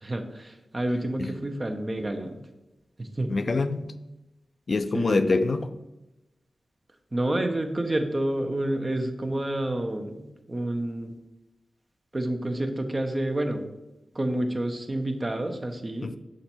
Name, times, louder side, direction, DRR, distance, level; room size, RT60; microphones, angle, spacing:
voice 1, 0.0-2.4 3.0-3.3 4.9-5.3 7.1-11.2 12.1-13.6 14.1-16.2, right 1 dB, 40° right, 0.9 m, -29 dB
voice 2, 3.3-3.9 4.7-5.7 16.0-16.2, left 3 dB, 65° left, 0.4 m, -25 dB
6.6 x 4.3 x 4.4 m
cardioid pair, 45°, 0 cm